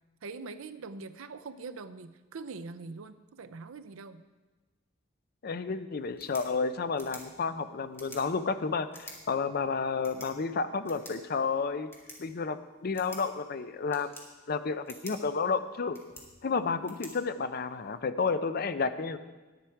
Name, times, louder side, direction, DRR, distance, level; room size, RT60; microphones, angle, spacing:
voice 1, 0.2-4.2, right 4 dB, 85° right, 12 dB, 0.6 m, -43 dB
voice 2, 5.4-11.9 12.2-14.1 14.5-16.0 16.4-19.2, left 4 dB, 50° left, 11 dB, 0.5 m, -31 dB
sound 1, 6.0-18.0, left 1 dB, 10° left, 1.7 m, -52 dB
10.5 x 10.0 x 4.5 m, 1.2 s
head